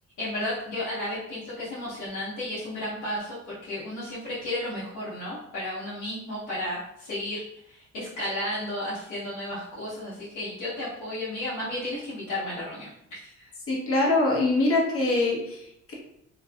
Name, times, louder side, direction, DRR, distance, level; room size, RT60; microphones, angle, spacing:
voice 1, 0.2-13.5, left 1 dB, 85° left, -10 dB, 0.9 m, -33 dB
voice 2, 13.7-15.9, left 2 dB, 50° left, -2 dB, 0.8 m, -24 dB
2.6 x 2.2 x 2.2 m, 0.77 s
cardioid pair, 90°, 30 cm